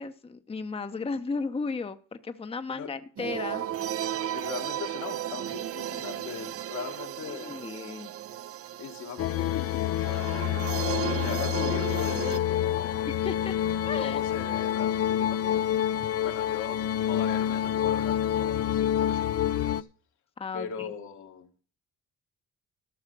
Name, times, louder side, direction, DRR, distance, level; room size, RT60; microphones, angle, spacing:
voice 1, 0.0-3.6 7.4-8.1 13.0-13.5 13.9-14.2 20.4-20.9, left 4 dB, 20° left, 9 dB, 0.7 m, -34 dB
sound 1, 3.2-12.4, right 11 dB, 50° right, 0.5 m, -35 dB
voice 2, 4.3-7.6 8.8-10.7 11.1-13.1 14.0-15.9 16.2-19.9 20.5-21.6, left 8 dB, 75° left, 3 dB, 1.8 m, -40 dB
sound 2, 9.2-19.8, left 11 dB, 50° left, 0.5 m, -27 dB
13.5 x 5.6 x 5.9 m, 0.41 s
cardioid pair, 90°, 30 cm